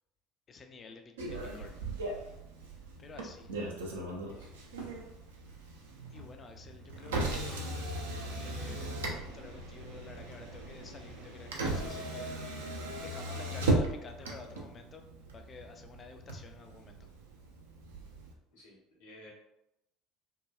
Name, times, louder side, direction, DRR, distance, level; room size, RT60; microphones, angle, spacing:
voice 1, 0.5-1.8 3.0-3.6 6.1-7.8 8.3-12.3 13.0-15.0 15.3-17.1, left 4 dB, 35° left, 5 dB, 0.4 m, -51 dB
Motor vehicle (road), 1.2-18.3, right 2 dB, 75° right, 0.4 m, -37 dB
voice 2, 4.3-4.6 18.5-19.3, left 1 dB, 70° left, -4 dB, 0.8 m, -56 dB
2.9 x 2.2 x 2.3 m, 0.87 s
figure-of-eight pair, 65°, 0 cm